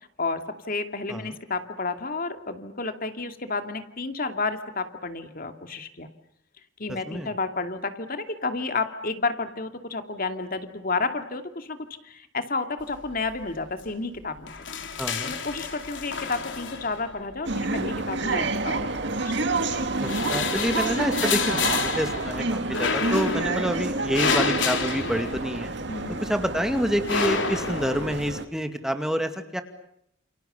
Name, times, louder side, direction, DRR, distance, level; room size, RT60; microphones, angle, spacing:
voice 1, 0.2-6.1 6.8-14.5 15.2-19.6 25.9-26.2, left 3 dB, 50° left, 7 dB, 2.5 m, -31 dB
sound 1, 12.9-13.4 13.7-13.9 14.2-17.3 18.2-19.2 19.6-25.9 26.3-28.2, left 5 dB, 70° left, 3.6 m, -30 dB
voice 2, 15.0-15.3 20.0-25.7 26.2-29.6, equal, 5° right, 7 dB, 2.3 m, -28 dB
sound 2, 17.5-28.5, right 3 dB, 60° right, 2.4 m, -29 dB
30.0 x 29.0 x 6.9 m, 0.76 s
head